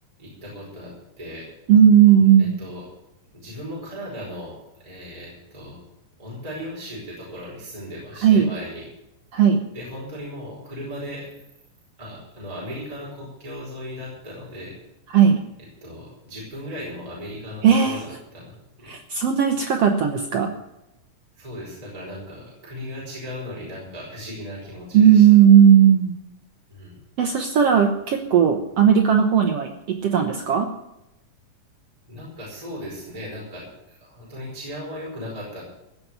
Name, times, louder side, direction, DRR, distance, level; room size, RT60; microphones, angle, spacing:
voice 1, 0.2-1.5 2.1-2.2 2.6-2.9 3.3-5.8 6.2-8.9 9.7-11.3 12.0-14.8 15.8-18.5 18.8-19.0 21.3-25.2 26.7-27.0 32.1-35.6, equal, 10° right, -5 dB, 4.9 m, -37 dB
voice 2, 1.7-2.6 8.2-8.5 9.3-9.6 15.1-15.4 17.6-18.0 18.9-20.5 24.9-26.2 27.2-30.7, right 8 dB, 70° right, 5 dB, 1.5 m, -16 dB
16.0 x 7.0 x 9.3 m, 0.89 s
omnidirectional pair, 4.1 m